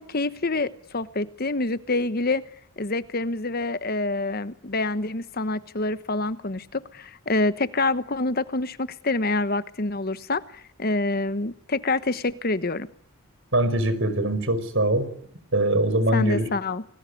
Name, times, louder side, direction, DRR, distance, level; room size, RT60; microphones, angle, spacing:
voice 1, 0.0-2.4 2.8-12.9 16.1-16.9, left 2 dB, 45° left, 1.1 m, -26 dB
voice 2, 13.5-15.1 15.5-16.5, right 1 dB, 60° right, 5.1 m, -22 dB
29.0 x 20.0 x 9.8 m
head